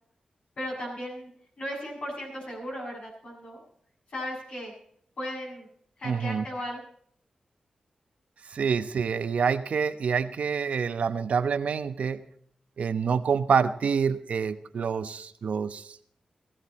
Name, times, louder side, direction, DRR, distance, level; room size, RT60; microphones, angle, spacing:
voice 1, 0.6-1.3 1.6-3.6 4.1-4.7 5.2-5.7 6.0-6.8, equal, 60° left, -2 dB, 7.5 m, -36 dB
voice 2, 6.0-6.4 8.5-12.2 12.8-15.9, right 6 dB, 70° right, 11 dB, 0.8 m, -27 dB
16.5 x 15.0 x 4.2 m, 0.62 s
wide cardioid pair, 170°, 2 cm